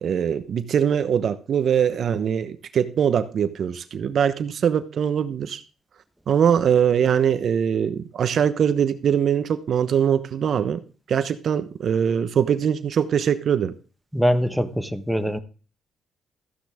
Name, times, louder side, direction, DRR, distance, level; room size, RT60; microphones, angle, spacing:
voice 1, 0.0-5.6 6.3-10.8 11.1-13.7, right 8 dB, 60° right, 1.0 m, -22 dB
voice 2, 14.1-15.4, equal, 5° right, 1.3 m, -23 dB
14.5 x 10.0 x 3.6 m
cardioid pair, 90°, 0 cm